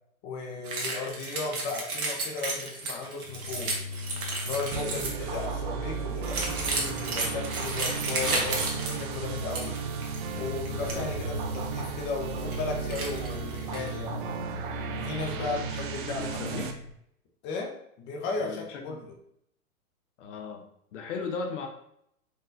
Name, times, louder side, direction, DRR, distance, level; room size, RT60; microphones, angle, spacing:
voice 1, 0.2-3.8 4.4-9.8 10.4-14.3 14.9-16.7 17.4-19.1, left 4 dB, 25° left, 1 dB, 0.8 m, -35 dB
sound 1, 0.6-5.3 6.2-9.8 10.0-10.2 10.6-11.0 11.5-11.6 12.2-12.6 12.9-13.9, right 3 dB, 80° right, 1.2 m, -33 dB
sound 2, 3.2-16.9, equal, 80° left, 1.2 m, -39 dB
sound 3, 4.7-16.7, right 6 dB, 40° right, 0.5 m, -35 dB
voice 2, 15.9-16.7 18.4-19.0 20.2-20.6 20.9-21.7, left 5 dB, 55° left, 3 dB, 0.8 m, -36 dB
4.5 x 3.0 x 2.6 m, 0.73 s
hypercardioid pair, 110°, 43 cm